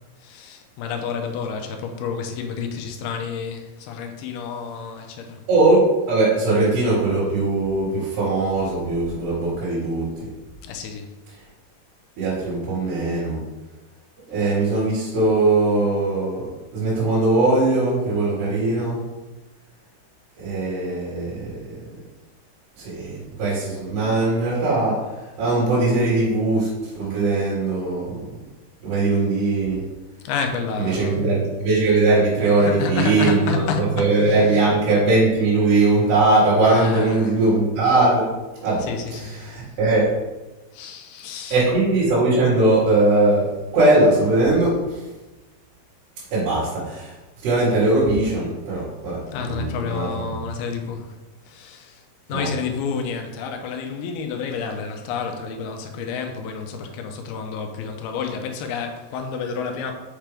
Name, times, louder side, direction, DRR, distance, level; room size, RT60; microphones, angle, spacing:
voice 1, 0.2-5.4 10.6-11.1 30.2-31.2 32.6-34.7 36.6-37.4 38.8-39.5 40.7-41.6 49.3-51.2 51.5-52.0 52.3-59.9, left 6 dB, 80° left, 4 dB, 2.7 m, -30 dB
voice 2, 5.5-10.3 12.2-13.4 14.3-19.0 20.4-21.6 22.8-25.1 25.4-26.7 27.0-28.2 28.8-29.8 30.8-33.6 34.0-38.3 38.6-38.9 39.4-40.2 41.5-44.9 46.3-47.1 47.4-50.1 52.3-52.5, right 2 dB, 85° right, -10 dB, 4.4 m, -20 dB
7.5 x 5.7 x 3.5 m, 1.1 s
omnidirectional pair, 4.6 m